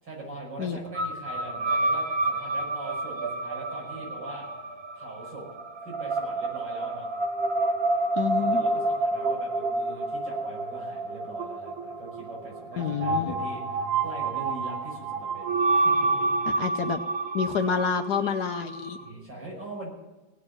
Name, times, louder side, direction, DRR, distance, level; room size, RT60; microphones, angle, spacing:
voice 1, 0.0-4.5 4.9-5.4 5.8-7.1 8.4-16.7 17.6-17.8 19.0-19.9, right 1 dB, 85° right, -3 dB, 6.4 m, -41 dB
sound 1, 0.9-19.1, right 2 dB, 40° right, 1.2 m, -29 dB
voice 2, 8.2-8.6 12.8-13.3 16.5-17.0 17.3-19.0, left 7 dB, 70° left, 7 dB, 1.3 m, -28 dB
18.0 x 6.7 x 9.9 m, 1.1 s
omnidirectional pair, 1.9 m